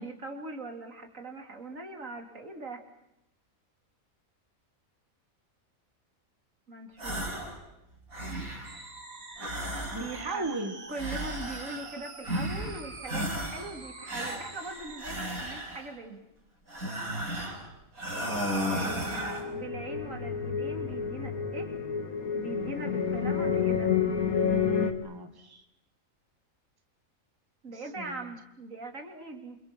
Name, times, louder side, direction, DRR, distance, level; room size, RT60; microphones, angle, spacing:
voice 1, 0.0-2.8 6.7-7.3 10.0-10.5 10.9-16.2 18.6-21.7 22.3-23.9 27.6-29.6, right 3 dB, 65° right, 4 dB, 3.7 m, -41 dB
sound 1, 7.0-7.6 7.9-8.8 9.4-10.4 10.9-11.9 12.2-12.8 13.1-13.7 14.1-15.9 16.7-17.6 18.0-19.5, equal, 90° right, 7.5 m, -34 dB
sound 2, 8.6-15.1, right 3 dB, 45° right, 2.5 m, -46 dB
voice 2, 9.9-10.8 14.0-14.2 17.4-17.7 18.8-19.4 23.3-23.7 25.0-25.6 27.7-28.3, right 2 dB, 15° right, 6 dB, 1.9 m, -39 dB
sound 3, 18.2-24.9, left 7 dB, 85° left, 2.4 m, -30 dB
29.0 x 27.5 x 6.2 m, 0.81 s
omnidirectional pair, 1.5 m